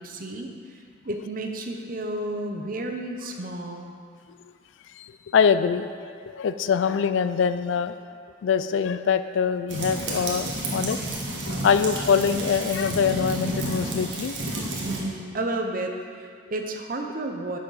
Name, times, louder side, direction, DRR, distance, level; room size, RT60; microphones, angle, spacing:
voice 1, 0.0-3.9 14.8-17.6, right 2 dB, 45° right, 3 dB, 0.7 m, -32 dB
voice 2, 5.0-5.9 6.2-7.9 8.4-11.0 11.5-14.7, left 6 dB, 70° left, 12 dB, 0.3 m, -24 dB
sound 1, 9.7-15.0, right 2 dB, 65° right, 1.4 m, -31 dB
10.5 x 6.3 x 4.1 m, 2.2 s
head